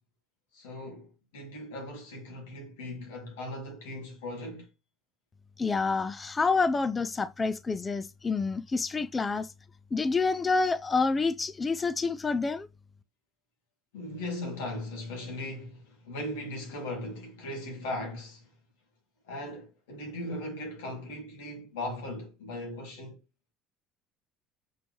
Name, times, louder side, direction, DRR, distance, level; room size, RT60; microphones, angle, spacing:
voice 1, 0.5-4.7 13.9-18.5 19.2-23.2, left 1 dB, 90° left, 3.4 m, -38 dB
voice 2, 5.6-9.5 9.9-12.7, left 4 dB, 25° left, 0.5 m, -28 dB
6.2 x 4.5 x 3.5 m
supercardioid pair, 90°, 0 cm